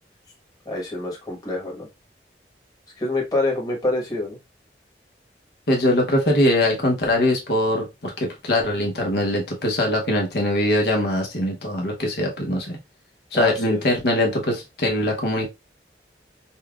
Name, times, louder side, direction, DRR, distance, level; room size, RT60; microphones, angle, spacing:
voice 1, 0.6-1.9 3.0-4.4 13.3-13.8, left 2 dB, 20° left, -2 dB, 1.2 m, -26 dB
voice 2, 5.7-12.8 13.3-15.5, left 1 dB, 70° left, 1 dB, 0.9 m, -22 dB
5.5 x 2.2 x 2.3 m, 0.23 s
head